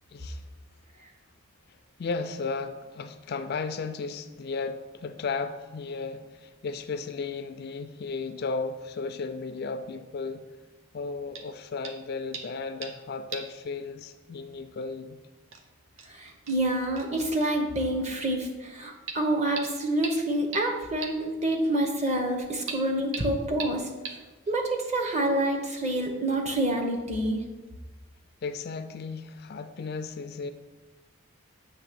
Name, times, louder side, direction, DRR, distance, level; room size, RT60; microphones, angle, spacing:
voice 1, 0.1-0.4 2.0-10.4 10.9-15.2 28.4-30.5, left 4 dB, 45° left, 9 dB, 0.3 m, -34 dB
sound 1, 11.3-11.5 11.8-12.0 12.3-13.0 13.3-13.6 13.8-13.9 15.0-15.1 15.5-15.6 16.0-16.1 16.5-16.6 17.0-17.1 17.4-17.5 19.1-19.2 19.6-19.7 20.0-20.1 20.5-20.6 21.0-21.1 22.7-22.8 23.1-23.2 23.6-23.7 24.0-24.1, right 5 dB, 65° right, 0.7 m, -37 dB
voice 2, 16.1-23.9 24.5-27.4, right 1 dB, 30° right, 2 dB, 1.0 m, -27 dB
7.8 x 3.2 x 6.1 m, 1.3 s
head